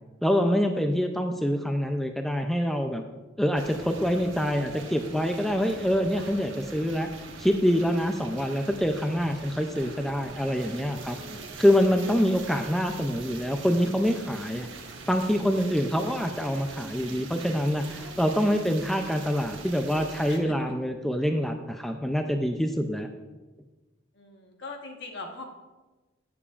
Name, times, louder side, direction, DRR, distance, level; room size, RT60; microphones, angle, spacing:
voice 1, 0.2-3.0 3.4-7.1 7.4-11.2 11.6-14.7 15.1-23.1, equal, ahead, 5 dB, 0.4 m, -25 dB
sound 1, 3.5-20.4, right 3 dB, 70° right, 1.2 m, -43 dB
voice 2, 24.1-25.4, left 3 dB, 60° left, 2 dB, 1.2 m, -40 dB
15.0 x 7.1 x 2.4 m, 1.2 s
head